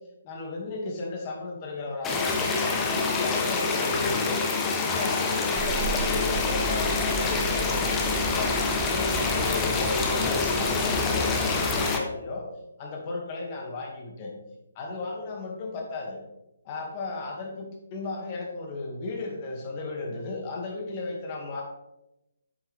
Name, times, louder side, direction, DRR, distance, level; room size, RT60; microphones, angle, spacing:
voice 1, 0.2-4.4 4.8-7.8 8.2-12.5 12.8-14.3 14.8-16.2 16.6-21.6, left 3 dB, 35° left, 0 dB, 2.1 m, -34 dB
sound 1, 2.0-12.0, left 4 dB, 15° left, 1.1 m, -26 dB
sound 2, 5.5-11.9, right 5 dB, 10° right, 0.4 m, -35 dB
8.8 x 7.1 x 3.5 m, 0.91 s
figure-of-eight pair, 145°, 0 cm